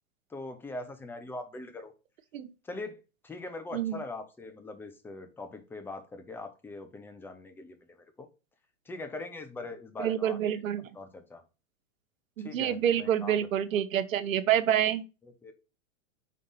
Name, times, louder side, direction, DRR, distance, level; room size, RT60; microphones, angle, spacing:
voice 1, 0.3-1.9 2.6-3.0 3.2-7.8 8.2-8.3 8.9-10.6 10.9-11.4 12.4-13.4 15.2-15.5, left 2 dB, 5° left, 0.6 m, -41 dB
voice 2, 10.0-10.8 12.4-15.0, right 10 dB, 90° right, 1.0 m, -27 dB
5.6 x 3.8 x 5.4 m
hypercardioid pair, 145°, 39 cm